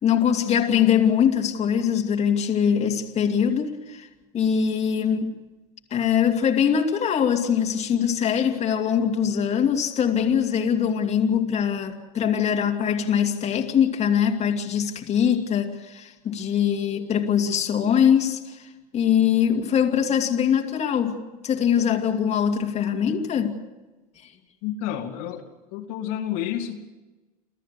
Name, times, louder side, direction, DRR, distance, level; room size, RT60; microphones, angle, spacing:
voice 1, 0.0-4.1 4.3-5.3 5.9-23.6 24.2-24.3, left 8 dB, 35° left, 2 dB, 2.6 m, -22 dB
voice 2, 24.6-25.4 25.7-26.9, left 10 dB, 65° left, 2 dB, 2.5 m, -30 dB
29.0 x 13.5 x 8.4 m, 1.2 s
hypercardioid pair, 100°, 20 cm